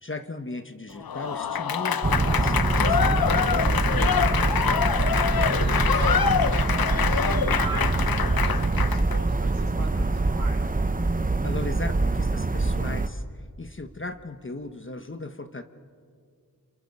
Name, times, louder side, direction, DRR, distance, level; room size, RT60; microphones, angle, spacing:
voice 1, 0.0-3.5 11.4-13.2 13.6-15.6, left 2 dB, 35° left, 8 dB, 1.1 m, -37 dB
Applause / Crowd, 1.0-9.2, left 7 dB, 80° left, 0.7 m, -25 dB
sound 1, 2.0-13.1, right 3 dB, 25° right, 0.8 m, -24 dB
voice 2, 4.1-10.7, right 3 dB, 75° right, -5 dB, 4.5 m, -40 dB
29.0 x 28.0 x 5.4 m, 2.1 s
wide cardioid pair, 70°, 35 cm